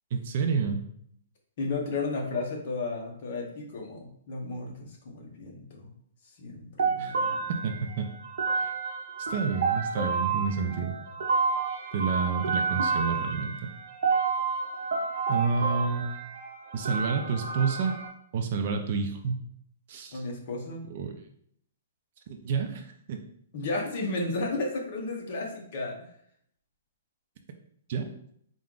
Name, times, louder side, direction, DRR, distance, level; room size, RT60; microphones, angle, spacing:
voice 1, 0.1-0.8 7.0-7.2 7.6-8.1 8.6-8.7 9.3-11.0 11.9-13.5 15.3-16.1 16.7-17.9 18.3-19.4 19.9-20.2 20.9-21.2 22.3-23.2 27.9-28.1, right 5 dB, 35° right, 5 dB, 0.4 m, -29 dB
voice 2, 1.6-5.9 6.4-7.4 20.1-20.8 23.5-26.1, left 3 dB, 40° left, 0 dB, 0.9 m, -33 dB
sound 1, 6.8-18.1, right 5 dB, 65° right, 0.8 m, -30 dB
4.3 x 2.4 x 3.7 m, 0.68 s
hypercardioid pair, 175°, 0 cm